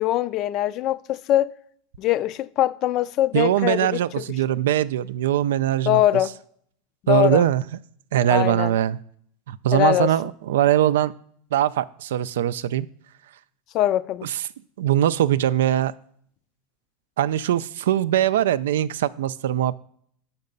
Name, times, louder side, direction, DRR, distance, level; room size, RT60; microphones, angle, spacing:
voice 1, 0.0-1.5 2.0-4.2 5.9-6.3 7.0-7.4 8.3-8.7 9.7-10.1 13.7-14.3, left 13 dB, 45° left, 0.4 m, -22 dB
voice 2, 3.3-6.0 7.1-7.7 8.1-9.0 9.5-11.1 11.5-12.9 14.2-14.5 14.8-15.9 17.2-19.8, right 11 dB, 85° right, 0.3 m, -21 dB
5.9 x 5.6 x 5.3 m
supercardioid pair, 115°, 0 cm